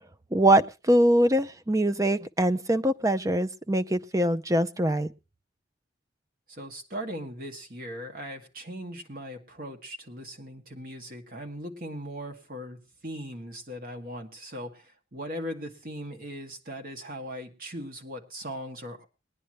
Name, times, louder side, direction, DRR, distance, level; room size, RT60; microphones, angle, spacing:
voice 1, 0.3-5.1, right 1 dB, 20° right, 13 dB, 0.6 m, -23 dB
voice 2, 6.5-19.0, equal, 50° right, 4 dB, 2.1 m, -39 dB
20.5 x 10.0 x 3.1 m, 0.29 s
head